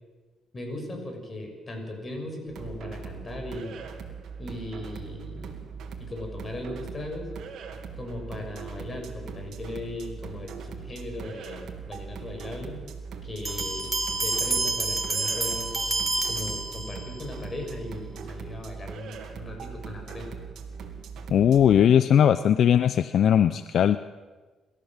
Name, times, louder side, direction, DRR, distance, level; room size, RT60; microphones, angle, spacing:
voice 1, 0.5-3.8 4.4-5.7 6.0-7.3 8.0-12.8 13.2-13.9 14.2-15.8 16.3-20.3, left 1 dB, 30° left, 3 dB, 6.6 m, -38 dB
sound 1, 2.5-21.6, right 6 dB, 75° right, 2.6 m, -40 dB
sound 2, 13.5-17.2, right 3 dB, 25° right, 3.2 m, -28 dB
voice 2, 21.3-24.0, left 9 dB, 65° left, 13 dB, 0.6 m, -19 dB
27.5 x 14.0 x 7.4 m, 1.3 s
cardioid pair, 90°, 0 cm